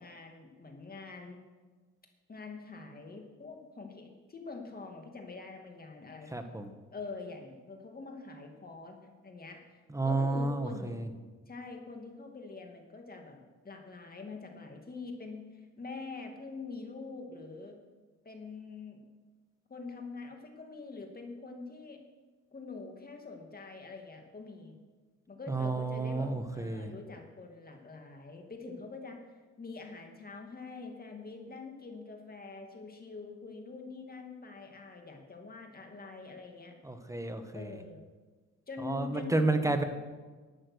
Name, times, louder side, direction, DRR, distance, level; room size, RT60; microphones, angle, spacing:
voice 1, 0.0-1.4 2.3-6.5 6.9-9.6 10.0-11.0 11.5-13.4 13.6-17.8 18.2-19.0 19.7-22.0 22.5-24.7 25.3-29.2 29.6-36.7 37.5-38.0 38.7-39.8, left 4 dB, 30° left, 3 dB, 2.4 m, -45 dB
voice 2, 6.3-6.7 9.9-11.0 25.5-26.9 36.8-37.7 38.8-39.8, right 2 dB, 10° right, 7 dB, 1.3 m, -31 dB
11.5 x 8.7 x 6.4 m, 1.3 s
cardioid pair, 90°, 30 cm